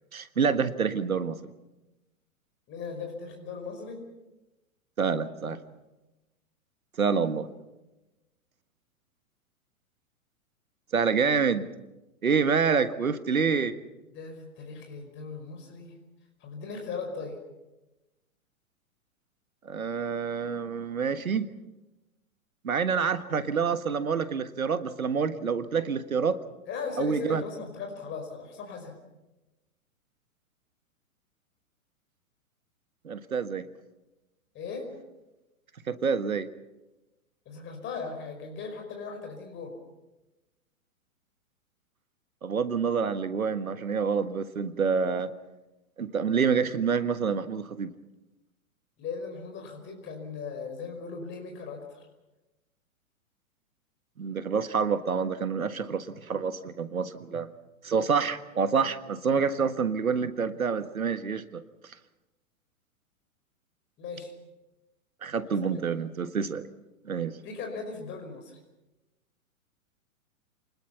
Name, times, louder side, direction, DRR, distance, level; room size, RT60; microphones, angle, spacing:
voice 1, 0.1-1.4 5.0-5.6 7.0-7.5 10.9-11.7 12.2-13.7 19.6-21.5 22.6-26.4 27.0-27.4 33.0-33.7 35.9-36.5 42.4-45.3 46.0-47.9 54.2-57.5 57.8-61.6 65.2-66.7 67.0-67.4, right 6 dB, 80° right, 12 dB, 1.6 m, -27 dB
voice 2, 2.7-4.0 14.1-16.0 16.4-17.4 26.7-29.0 34.5-34.9 37.5-39.7 49.0-52.1 64.0-64.3 65.4-65.8 67.4-68.6, left 5 dB, 25° left, 3 dB, 5.2 m, -38 dB
29.5 x 20.5 x 5.8 m, 1.0 s
figure-of-eight pair, 110°, 42 cm